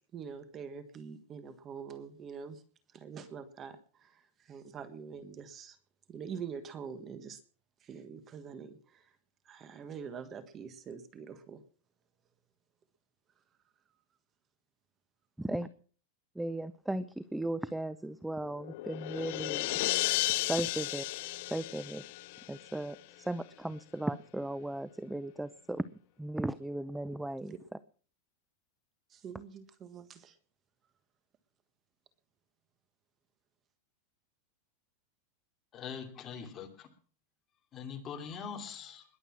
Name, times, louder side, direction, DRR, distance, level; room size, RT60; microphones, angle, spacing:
voice 1, 0.1-2.6 2.9-3.8 4.5-5.8 6.1-7.4 7.9-8.8 9.5-11.6 29.1-30.3, right 6 dB, 25° right, 12 dB, 1.5 m, -44 dB
voice 2, 15.4-15.7 16.4-19.7 20.3-21.1 21.5-22.0 22.5-25.8 26.2-27.5, right 1 dB, 5° right, 16 dB, 0.6 m, -36 dB
sound 1, 18.4-23.0, left 19 dB, 60° left, 0.8 m, -34 dB
voice 3, 35.7-36.9 37.7-39.0, left 6 dB, 25° left, 5 dB, 2.7 m, -42 dB
21.0 x 8.1 x 6.0 m, 0.42 s
supercardioid pair, 150°, 0 cm